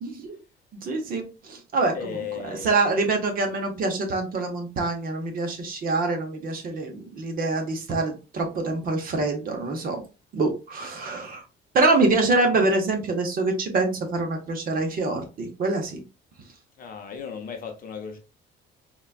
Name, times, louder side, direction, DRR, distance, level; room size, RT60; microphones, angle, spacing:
voice 1, 0.0-0.4 0.7-2.2 2.4-10.0 10.3-11.4 11.7-16.0, right 3 dB, 45° right, 0.8 m, -25 dB
voice 2, 1.9-2.8 16.8-18.2, left 6 dB, 45° left, 0.7 m, -35 dB
3.9 x 2.2 x 2.4 m
cardioid pair, 160°, 21 cm